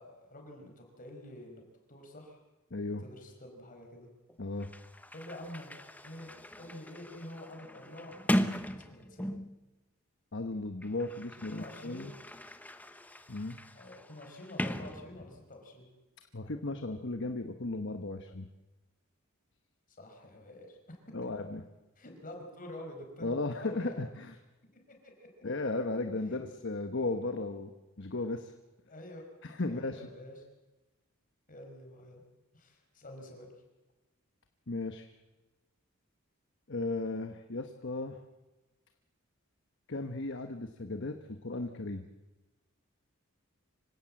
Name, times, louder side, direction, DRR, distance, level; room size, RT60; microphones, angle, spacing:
voice 1, 0.0-1.6 1.9-2.4 3.0-4.1 5.1-5.7 6.0-6.3 6.6-8.2 8.6-9.3 11.5-12.1 13.7-15.9 20.0-21.3 22.0-24.0 24.9-25.4 26.3-26.4 28.9-29.3 29.6-30.4 31.5-32.2 32.5-33.5, left 1 dB, 40° left, 3 dB, 5.0 m, -47 dB
voice 2, 2.7-3.0 4.4-4.7 10.3-12.1 13.3-13.6 16.3-18.5 21.1-21.6 23.2-24.3 25.4-27.7 28.0-28.5 29.4-30.1 34.7-35.1 36.7-38.2 39.9-42.0, left 2 dB, 55° left, 7 dB, 1.1 m, -35 dB
Sliding door, 4.3-4.4 4.6-9.7 10.6-15.6, equal, 5° left, 0.8 m, -38 dB
25.5 x 16.5 x 7.7 m, 1.1 s
head